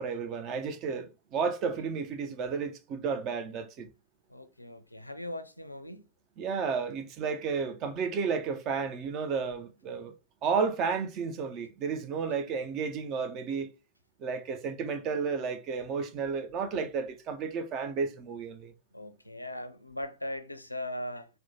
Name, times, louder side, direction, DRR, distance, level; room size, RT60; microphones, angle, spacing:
voice 1, 0.0-3.9 6.4-10.1 10.4-13.7 14.2-18.7, right 5 dB, 35° right, 0.5 m, -32 dB
voice 2, 4.3-6.1 18.9-21.3, left 1 dB, 85° left, 0.4 m, -39 dB
4.3 x 2.1 x 2.8 m
figure-of-eight pair, 90°, 0 cm